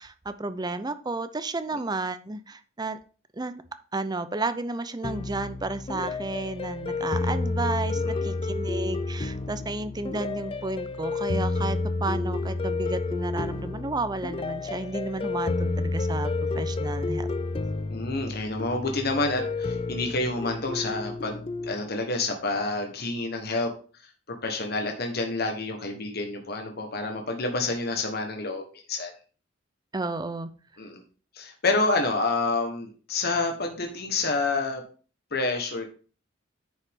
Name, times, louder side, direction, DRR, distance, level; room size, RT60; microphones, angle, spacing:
voice 1, 0.0-3.0 3.3-3.6 3.9-17.3 29.9-30.5, right 3 dB, 20° right, 12 dB, 0.6 m, -32 dB
sound 1, 5.0-21.7, left 3 dB, 30° left, 0.5 m, -30 dB
voice 2, 8.0-8.4 17.9-23.7 24.3-29.1 30.8-31.0 31.3-34.8 35.3-35.9, left 3 dB, 55° left, 3 dB, 1.3 m, -28 dB
9.9 x 5.5 x 3.7 m, 0.38 s
head